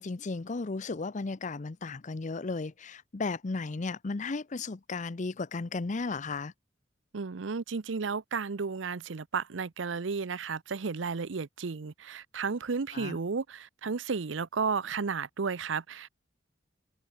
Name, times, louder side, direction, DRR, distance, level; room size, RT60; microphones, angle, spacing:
voice 1, 0.0-6.5 12.9-13.2, left 3 dB, 40° left, 0.6 m, -35 dB
voice 2, 7.1-16.1, right 5 dB, 90° right, 0.7 m, -33 dB
head